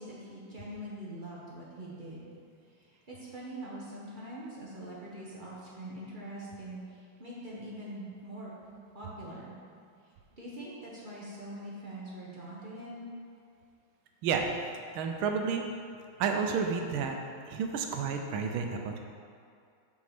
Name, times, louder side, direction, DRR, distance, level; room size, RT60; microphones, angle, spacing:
voice 1, 0.0-2.3 2.7-9.6 10.4-13.1, right 1 dB, 30° right, -6 dB, 0.9 m, -43 dB
voice 2, 14.9-15.7 16.2-17.2 17.5-19.0, right 6 dB, 85° right, 4 dB, 1.5 m, -30 dB
6.1 x 4.9 x 5.9 m, 2.3 s
omnidirectional pair, 2.2 m